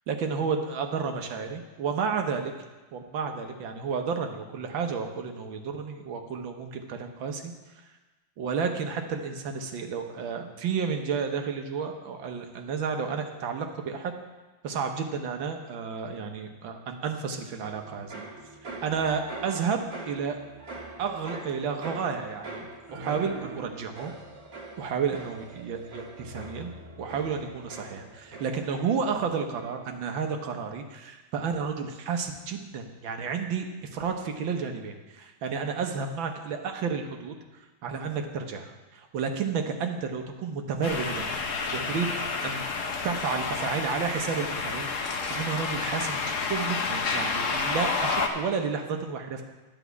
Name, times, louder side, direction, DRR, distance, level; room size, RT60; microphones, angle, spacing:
voice 1, 0.1-2.5 2.9-7.8 8.4-14.1 14.6-18.2 18.6-20.4 21.0-22.7 22.9-24.1 24.8-26.7 27.0-41.3 41.7-42.2 42.4-42.7 43.0-49.4, right 6 dB, 70° right, 5 dB, 1.7 m, -31 dB
sound 1, 17.6-29.2 29.5-30.0, right 2 dB, 45° right, 2.2 m, -43 dB
sound 2, 40.8-48.3, left 4 dB, 50° left, 1.0 m, -30 dB
11.5 x 4.9 x 8.1 m, 1.2 s
omnidirectional pair, 2.2 m